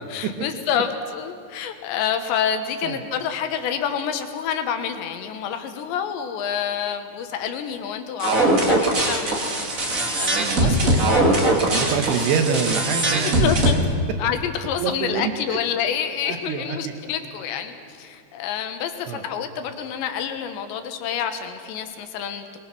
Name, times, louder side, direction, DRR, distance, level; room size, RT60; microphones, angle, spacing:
voice 1, 0.1-11.0 13.0-13.8 14.2-22.6, left 8 dB, 75° left, 7 dB, 3.4 m, -28 dB
sound 1, 8.2-13.7, right 1 dB, 45° right, 1.1 m, -21 dB
voice 2, 10.3-13.8 14.8-15.3 16.3-16.8 19.1-19.2, right 6 dB, 70° right, 6 dB, 3.1 m, -26 dB
25.0 x 22.0 x 6.1 m, 2.2 s
omnidirectional pair, 5.2 m